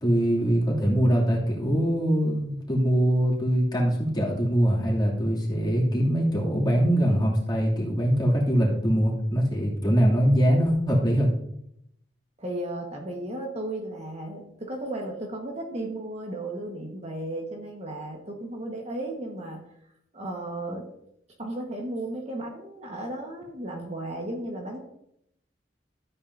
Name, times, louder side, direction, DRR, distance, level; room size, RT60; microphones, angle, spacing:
voice 1, 0.0-11.3, equal, 25° left, -4 dB, 2.8 m, -23 dB
voice 2, 12.4-19.6 20.1-20.8 21.4-24.8, right 1 dB, 35° right, 1 dB, 1.4 m, -34 dB
13.5 x 8.7 x 2.7 m, 0.77 s
head